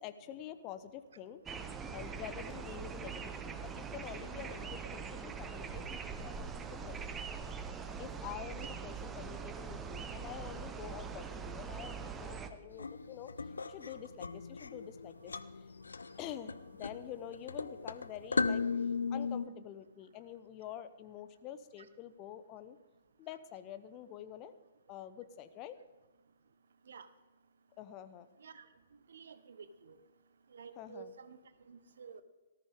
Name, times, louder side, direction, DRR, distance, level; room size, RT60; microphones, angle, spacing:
voice 1, 0.0-1.4 1.9-7.0 7.3-7.4 8.0-13.3 13.6-15.3 16.2-18.6 19.1-22.8 23.2-24.5 24.9-25.8 27.8-28.3 30.8-31.1, left 11 dB, 30° left, 11 dB, 0.9 m, -47 dB
sound 1, 1.5-12.5, right 6 dB, 15° right, 1.0 m, -42 dB
sound 2, 12.7-19.4, left 4 dB, 70° left, 0.7 m, -37 dB
voice 2, 29.1-30.0 30.5-31.4 31.7-32.2, right 6 dB, 60° right, 13 dB, 1.1 m, -51 dB
18.5 x 14.0 x 3.7 m, 1.2 s
figure-of-eight pair, 120°, 0 cm